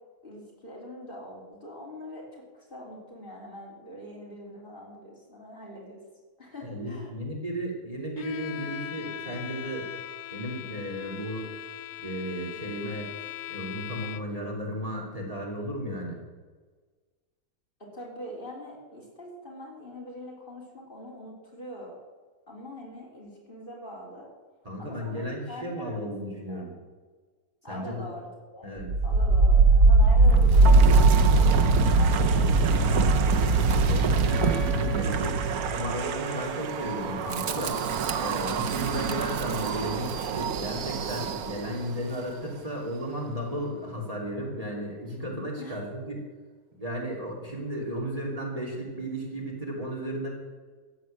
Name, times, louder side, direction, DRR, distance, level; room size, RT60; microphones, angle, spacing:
voice 1, 0.2-6.0 6.4-7.1 17.8-22.0 22.5-24.3 24.8-26.1 26.5-26.8 27.6-28.7 29.0-33.0 45.6-45.8, equal, 35° left, -3 dB, 3.8 m, -43 dB
voice 2, 6.6-9.8 10.3-11.5 12.0-13.1 13.5-16.2 24.6-26.7 27.7-28.1 28.6-28.9 33.8-37.8 38.2-46.2 46.8-50.3, equal, 25° right, -2 dB, 3.2 m, -34 dB
Bowed string instrument, 8.2-14.5, left 12 dB, 65° left, 1.0 m, -40 dB
Wind, 28.8-41.8, right 3 dB, 90° right, 1.4 m, -22 dB
Wind instrument woodwind instrument, 34.2-39.9, right 5 dB, ahead, 1.1 m, -42 dB
14.0 x 8.4 x 8.9 m, 1.4 s
omnidirectional pair, 1.5 m